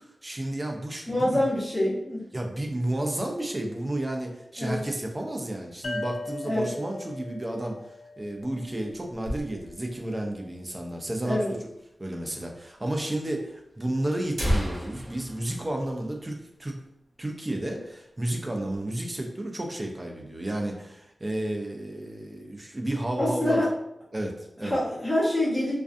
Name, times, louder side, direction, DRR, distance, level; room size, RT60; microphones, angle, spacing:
voice 1, 0.2-1.4 2.3-7.8 8.2-11.7 12.0-16.7 17.2-23.7 24.1-24.8, right 1 dB, 25° right, 2 dB, 0.4 m, -32 dB
voice 2, 1.1-2.3 4.6-4.8 6.4-6.7 11.2-11.5 23.2-23.7 24.6-25.7, left 1 dB, 15° left, -9 dB, 1.1 m, -26 dB
sound 1, 5.8-9.3, left 2 dB, 70° left, 0.3 m, -39 dB
sound 2, 8.2-10.0 10.3-10.4 10.6-10.7 11.4-11.5 12.4-12.5 12.9-13.0 13.7-13.8 14.1-16.7 17.1-17.2 17.6-17.9 18.3-18.9, equal, 75° right, 0.9 m, -33 dB
2.4 x 2.2 x 2.5 m, 0.83 s
wide cardioid pair, 105°, 0 cm